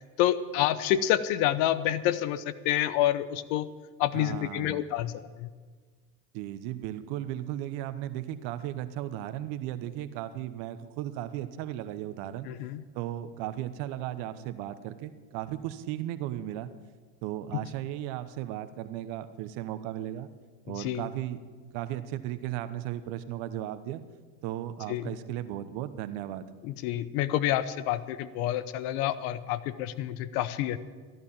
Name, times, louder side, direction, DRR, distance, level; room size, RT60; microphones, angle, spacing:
voice 1, 0.2-3.7 4.0-5.1 5.4-5.5 12.5-12.8 20.8-21.0 24.9-25.1 26.6-30.8, left 12 dB, 70° left, 15 dB, 0.9 m, -28 dB
voice 2, 4.1-4.8 6.3-12.5 12.9-16.7 17.2-20.3 20.6-21.4 21.7-24.0 24.4-26.5, right 12 dB, 65° right, 12 dB, 1.1 m, -36 dB
14.5 x 11.0 x 7.3 m, 1.5 s
hypercardioid pair, 75°, 47 cm